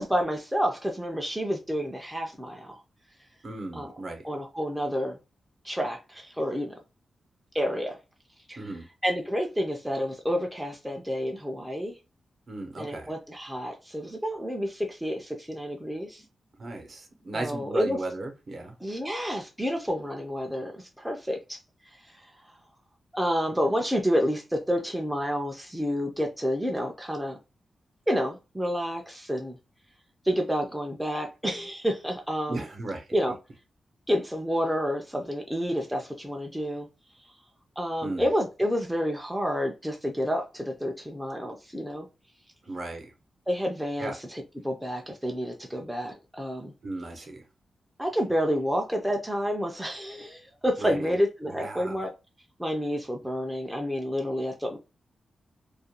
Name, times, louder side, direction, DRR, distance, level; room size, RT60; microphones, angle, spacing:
voice 1, 0.0-2.8 3.7-3.9 4.2-5.2 5.6-6.7 7.5-8.0 8.5-8.7 9.0-12.0 12.8-16.2 17.3-18.0 18.8-21.6 21.9-22.3 23.1-27.4 28.1-29.6 30.2-32.7 33.1-33.4 34.1-36.9 37.8-42.1 43.5-46.7 48.0-52.1 52.6-54.8, equal, 5° right, 0.4 m, -29 dB
voice 2, 3.4-4.3 8.6-8.9 12.5-13.1 16.6-18.7 32.5-33.1 38.0-38.3 42.6-43.1 44.0-44.2 46.8-47.4 50.8-51.2 51.5-52.1, right 2 dB, 50° right, 0.7 m, -36 dB
2.4 x 2.2 x 2.8 m
wide cardioid pair, 120°, 0 cm